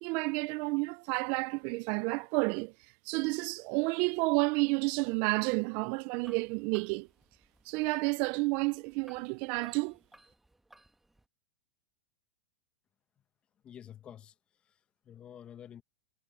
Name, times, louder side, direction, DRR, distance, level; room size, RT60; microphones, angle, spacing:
voice 1, 0.0-2.7 3.1-7.1 7.7-10.0, right 27 dB, 45° right, 0.3 m, -30 dB
sound 1, 6.1-11.3, right 2 dB, 5° right, 1.2 m, -61 dB
voice 2, 13.6-15.8, left 9 dB, 25° left, 1.0 m, -50 dB
supercardioid pair, 140°, 4 cm